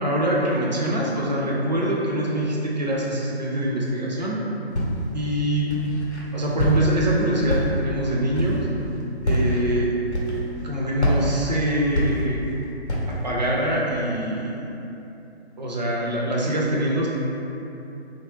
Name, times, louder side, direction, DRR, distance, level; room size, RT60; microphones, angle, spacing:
voice 1, 0.0-4.4 5.1-5.7 6.3-8.7 9.2-9.9 10.6-12.4 13.1-14.7 15.6-17.1, right 1 dB, 40° right, -4 dB, 0.5 m, -24 dB
Walk footsteps, 4.7-5.2 5.7-6.2 6.6-7.1 7.5-8.0 8.3-8.7 9.2-9.6 10.1-10.6 11.0-12.5 12.9-13.3, equal, 90° left, 0.7 m, -25 dB
2.8 x 2.2 x 2.9 m, 3.0 s
figure-of-eight pair, 140°, 33 cm